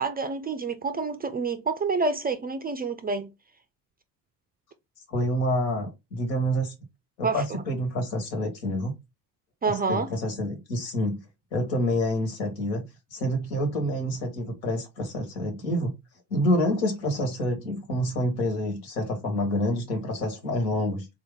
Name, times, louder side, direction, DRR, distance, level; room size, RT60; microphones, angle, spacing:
voice 1, 0.0-3.3 7.2-7.4 9.6-10.1, right 4 dB, 20° right, 0.4 m, -28 dB
voice 2, 5.1-6.7 7.2-8.9 9.6-11.2 11.5-15.9 16.3-21.1, equal, 80° left, 1.5 m, -27 dB
3.7 x 2.8 x 3.6 m
hypercardioid pair, 60°, 50 cm